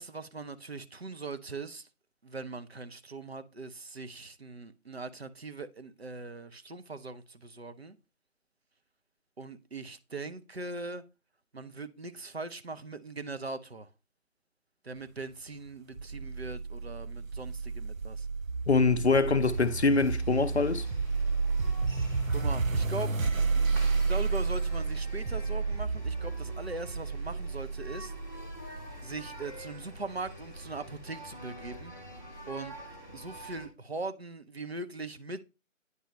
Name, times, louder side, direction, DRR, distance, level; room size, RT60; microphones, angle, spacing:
voice 1, 0.0-1.9 2.2-8.0 9.4-11.0 11.5-13.9 14.8-18.3 22.3-23.1 24.0-28.1 29.0-31.9 32.5-32.7 33.1-35.4, right 3 dB, 50° right, 0.7 m, -40 dB
sound 1, 16.0-29.1, right 4 dB, 85° right, 0.7 m, -31 dB
voice 2, 18.7-20.9, left 4 dB, 55° left, 0.6 m, -24 dB
sound 2, 19.4-33.7, equal, 15° left, 0.9 m, -46 dB
9.5 x 5.4 x 3.2 m
figure-of-eight pair, 160°, 39 cm